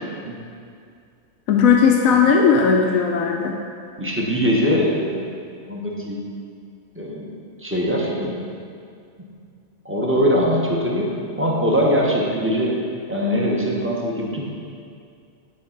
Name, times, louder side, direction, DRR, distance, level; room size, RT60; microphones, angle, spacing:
voice 1, 1.5-3.5, left 6 dB, 80° left, 1 dB, 1.1 m, -16 dB
voice 2, 4.0-5.3 5.7-6.2 6.9-7.3 7.6-8.5 9.8-12.8 13.1-14.4, equal, 10° right, -3 dB, 1.0 m, -22 dB
9.7 x 3.9 x 5.9 m, 2.3 s
omnidirectional pair, 1.4 m